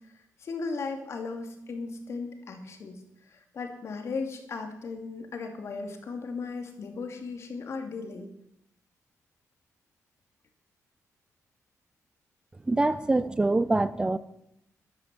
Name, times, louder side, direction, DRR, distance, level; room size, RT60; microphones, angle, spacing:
voice 1, 0.0-8.3, left 4 dB, 55° left, 5 dB, 2.7 m, -37 dB
voice 2, 12.7-14.2, right 2 dB, 15° right, 14 dB, 0.5 m, -24 dB
13.0 x 12.0 x 7.7 m, 0.77 s
wide cardioid pair, 170°, 6 cm